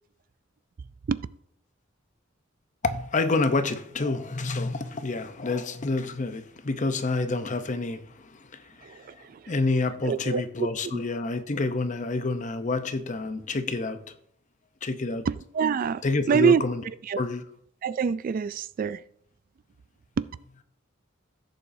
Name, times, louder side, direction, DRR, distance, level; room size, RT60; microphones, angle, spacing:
voice 1, 2.8-14.0 14.8-15.3 16.0-16.8 17.2-17.4, left 3 dB, 40° left, 0.7 m, -28 dB
voice 2, 8.8-9.5 10.0-11.0 15.3-16.6 17.1-17.2 17.8-19.0 20.2-20.3, right 6 dB, 45° right, 0.3 m, -26 dB
16.0 x 7.1 x 2.7 m
head